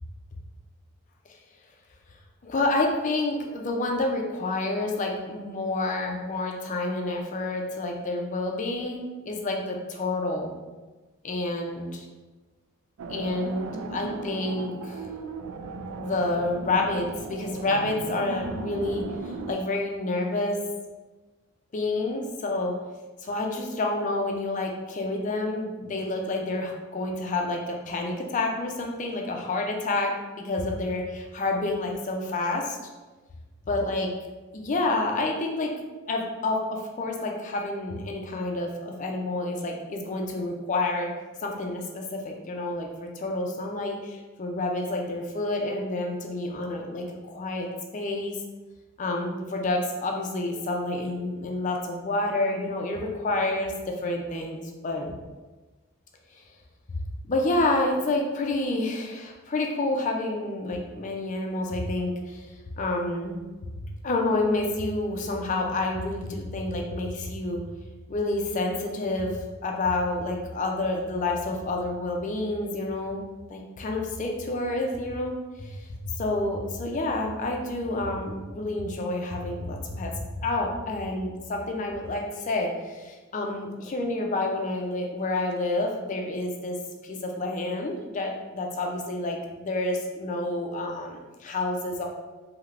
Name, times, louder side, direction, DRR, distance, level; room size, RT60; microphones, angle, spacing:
voice 1, 2.4-10.5 11.2-12.1 13.1-15.1 16.0-20.6 21.7-22.7 23.2-32.8 33.7-34.1 34.5-35.7 36.1-41.1 41.4-47.7 47.9-48.4 49.0-55.2 56.3-56.4 57.3-63.4 64.0-67.6 68.1-73.2 73.5-75.9 76.2-86.8 87.0-92.1, left 2 dB, 35° left, 1 dB, 0.4 m, -29 dB
sound 1, 13.0-19.5, right 3 dB, 80° right, 0.3 m, -37 dB
3.2 x 2.8 x 2.4 m, 1.2 s
head